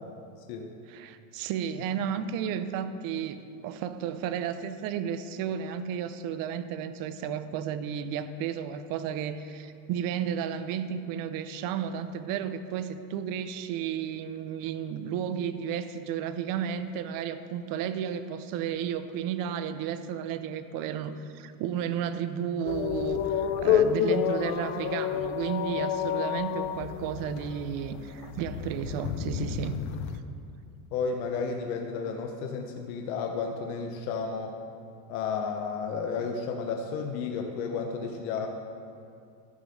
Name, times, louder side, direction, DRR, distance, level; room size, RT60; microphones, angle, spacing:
voice 1, 0.9-29.8, right 8 dB, 55° right, 11 dB, 0.6 m, -33 dB
sound 1, 22.7-30.2, left 9 dB, 70° left, 0.7 m, -29 dB
voice 2, 30.9-34.6 35.1-38.5, left 5 dB, 90° left, 3 dB, 1.0 m, -32 dB
13.5 x 5.3 x 6.3 m, 2.5 s
cardioid pair, 150°, 42 cm